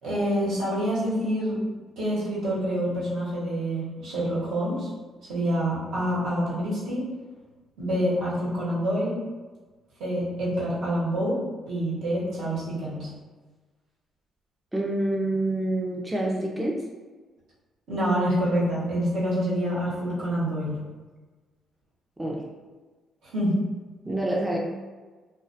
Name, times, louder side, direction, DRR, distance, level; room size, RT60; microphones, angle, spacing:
voice 1, 0.0-1.6 2.0-4.9 5.3-7.0 7.8-9.2 10.0-11.4 11.7-13.1 17.9-20.8 23.3-23.6, equal, 80° right, -8 dB, 1.0 m, -26 dB
voice 2, 14.7-16.8 22.2-22.4 24.1-24.6, right 1 dB, 10° right, -2 dB, 0.4 m, -27 dB
2.2 x 2.2 x 2.6 m, 1.3 s
cardioid pair, 90°, 0 cm